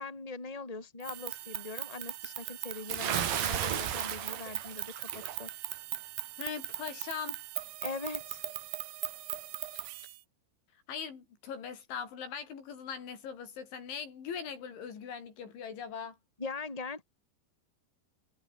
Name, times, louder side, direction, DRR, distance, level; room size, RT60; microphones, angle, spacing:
voice 1, 0.0-5.5 7.8-8.4 16.4-17.0, left 3 dB, 10° left, 3.9 m, -41 dB
sound 1, 1.0-10.2, right 16 dB, 75° right, 2.2 m, -40 dB
Bathtub (filling or washing) / Splash splatter, 2.9-5.4, right 9 dB, 55° right, 3.8 m, -34 dB
voice 2, 6.4-7.4 10.9-16.2, left 7 dB, 80° left, 6.9 m, -40 dB
omnidirectional pair, 5.3 m